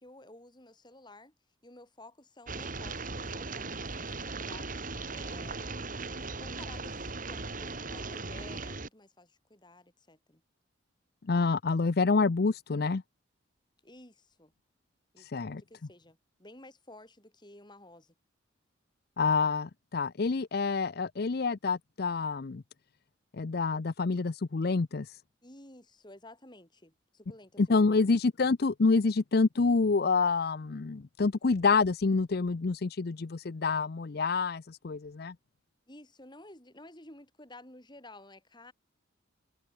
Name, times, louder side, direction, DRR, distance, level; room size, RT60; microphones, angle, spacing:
voice 1, 0.0-1.3 1.6-4.8 5.1-6.0 6.4-10.4 13.8-14.5 15.1-18.1 25.4-28.1 35.9-38.7, left 1 dB, 20° left, 6.6 m, -53 dB
sound 1, 2.5-8.9, right 3 dB, 45° right, 2.9 m, -38 dB
voice 2, 11.3-13.0 15.2-15.6 19.2-22.6 23.3-25.2 27.6-35.3, left 4 dB, 50° left, 0.5 m, -27 dB
head